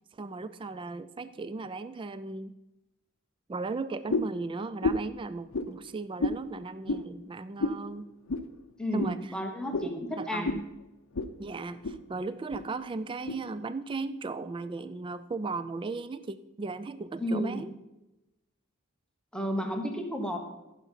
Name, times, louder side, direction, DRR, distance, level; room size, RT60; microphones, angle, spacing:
voice 1, 0.1-2.6 3.5-8.1 8.9-9.3 10.1-10.6 11.4-17.7, right 3 dB, 20° right, 14 dB, 0.3 m, -36 dB
sound 1, 4.1-4.4 4.8-5.1 5.5-5.7 6.2-6.4 6.8-7.1 7.6-7.8 8.3-8.5 9.0-9.1 9.7-9.9 10.4-10.6 11.1-11.3 11.6-12.0 12.5-12.6 13.3-13.4, left 2 dB, 65° left, 0.7 m, -30 dB
voice 2, 8.8-10.6 17.2-17.6 19.3-20.4, equal, 5° left, 3 dB, 1.1 m, -32 dB
14.0 x 6.0 x 5.5 m, 0.98 s
head